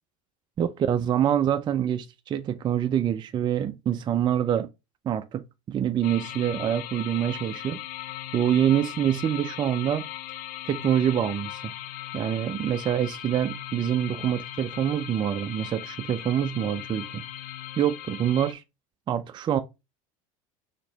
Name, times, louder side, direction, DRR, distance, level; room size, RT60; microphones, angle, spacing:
voice 1, 0.6-4.7 5.1-7.8 8.3-10.0 10.7-11.7 12.1-17.2 17.8-18.6 19.1-19.6, right 10 dB, 25° right, 0.4 m, -25 dB
sound 1, 6.0-18.5, left 13 dB, 55° left, 0.5 m, -38 dB
4.2 x 2.9 x 3.9 m
supercardioid pair, 115°, 17 cm